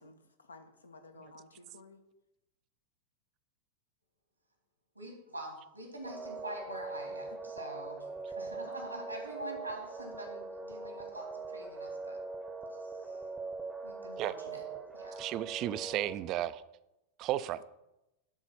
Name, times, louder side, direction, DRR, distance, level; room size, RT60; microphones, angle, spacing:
voice 1, 0.0-2.0 6.7-6.9 8.3-8.5 17.6-17.7, left 3 dB, 75° left, 7 dB, 0.9 m, -55 dB
voice 2, 5.0-8.1 8.4-12.2 12.8-13.2 13.8-14.6 14.9-15.3, right 1 dB, 85° right, 2 dB, 2.2 m, -45 dB
sound 1, 6.0-16.1, right 3 dB, 10° right, 0.8 m, -42 dB
voice 3, 15.2-16.6 17.2-17.6, right 13 dB, 35° right, 15 dB, 0.4 m, -33 dB
10.5 x 4.0 x 5.8 m, 0.93 s
figure-of-eight pair, 90°, 0 cm